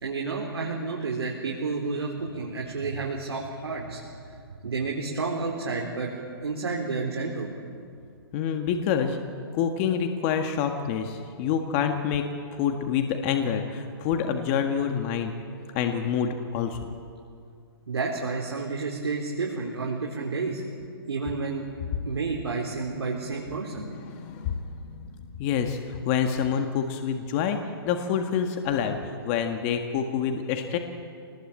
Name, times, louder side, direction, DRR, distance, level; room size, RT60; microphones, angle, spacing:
voice 1, 0.0-4.2 4.6-6.1 6.4-7.5 17.9-20.6 21.1-21.7 22.0-23.9, right 4 dB, 85° right, -2 dB, 4.1 m, -30 dB
voice 2, 8.3-9.2 9.5-15.3 15.7-16.9 23.7-27.6 27.8-29.0 29.3-30.8, left 7 dB, 30° left, 5 dB, 1.7 m, -27 dB
26.5 x 20.0 x 8.7 m, 2.3 s
hypercardioid pair, 150°, 13 cm